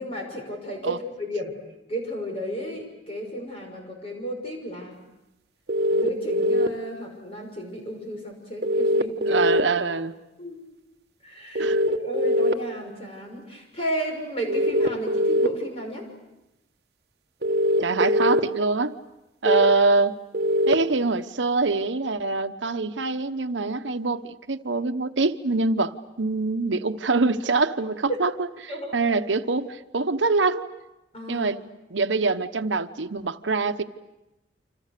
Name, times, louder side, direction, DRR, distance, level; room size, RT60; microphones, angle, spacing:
voice 1, 0.0-1.5 1.9-5.0 5.9-9.4 9.8-9.9 10.4-10.6 11.2-11.7 12.0-16.1 19.4-19.7 28.1-28.2 28.7-28.9 31.1-31.5, equal, 30° left, 2 dB, 6.2 m, -32 dB
sound 1, 5.7-6.7 8.6-9.6 11.6-12.5 14.5-15.5 17.4-18.4 20.3-20.7, equal, 60° right, 1.2 m, -21 dB
voice 2, 9.3-10.1 11.6-11.8 17.8-19.0 19.4-20.2 20.7-30.7 31.3-31.6 31.9-33.8, right 3 dB, 85° right, 9 dB, 1.0 m, -24 dB
29.0 x 26.5 x 6.7 m, 0.95 s
head